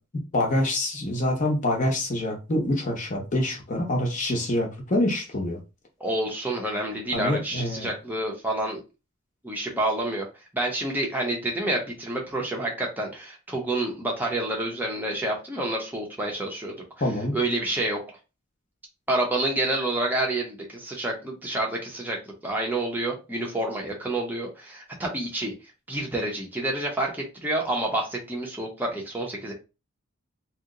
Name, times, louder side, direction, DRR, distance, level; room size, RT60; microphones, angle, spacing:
voice 1, 0.3-5.6 7.1-7.9 17.0-17.4, left 1 dB, 35° left, 0.7 m, -26 dB
voice 2, 6.0-8.8 9.4-10.3 10.5-16.8 17.3-18.2 19.1-22.2 22.4-25.5 25.9-29.5, right 1 dB, 10° right, 0.6 m, -28 dB
2.8 x 2.0 x 3.6 m
head